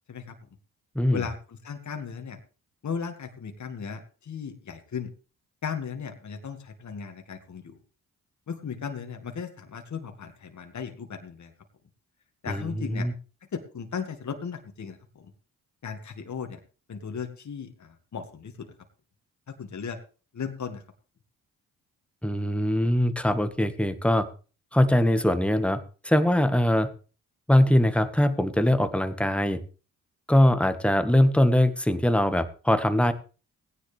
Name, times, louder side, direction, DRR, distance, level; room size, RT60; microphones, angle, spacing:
voice 1, 1.1-2.4 2.8-5.1 5.6-7.8 8.5-11.5 12.4-13.1 13.5-15.0 15.8-16.6 16.9-18.7 19.5-20.0 20.3-20.8, left 6 dB, 50° left, 5 dB, 2.1 m, -36 dB
voice 2, 12.5-13.1 22.2-24.3 24.7-26.9 27.5-29.6 30.3-33.1, left 1 dB, 5° left, 10 dB, 1.6 m, -22 dB
16.5 x 10.0 x 3.5 m, 0.35 s
supercardioid pair, 50°, 36 cm